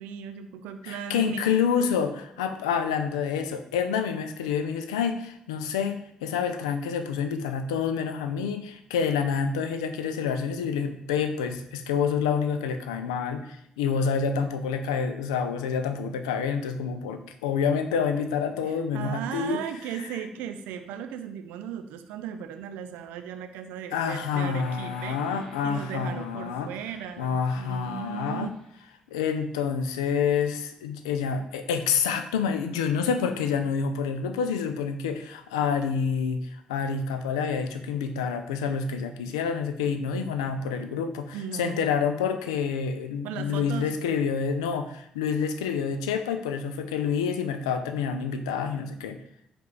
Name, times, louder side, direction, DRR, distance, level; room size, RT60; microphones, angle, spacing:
voice 1, 0.0-1.5 18.7-28.5 41.3-41.9 43.2-43.9, right 8 dB, 75° right, 8 dB, 0.4 m, -37 dB
voice 2, 0.8-19.6 20.0-20.1 23.9-26.7 27.2-28.5 29.1-49.2, left 6 dB, 85° left, 7 dB, 0.3 m, -28 dB
sound 1, 24.6-28.8, equal, 15° left, 1.4 m, -51 dB
5.0 x 2.4 x 3.7 m, 0.73 s
hypercardioid pair, 45°, 3 cm